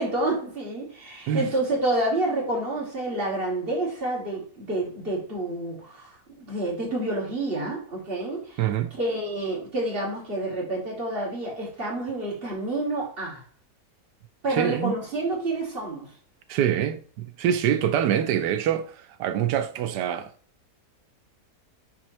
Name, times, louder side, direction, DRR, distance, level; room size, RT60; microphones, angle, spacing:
voice 1, 0.0-8.6 9.0-13.4 14.4-16.1, right 2 dB, 35° right, 2.7 m, -28 dB
voice 2, 8.6-8.9 14.5-15.0 16.5-20.3, right 9 dB, 90° right, 1.3 m, -25 dB
9.8 x 3.8 x 3.1 m
omnidirectional pair, 1.8 m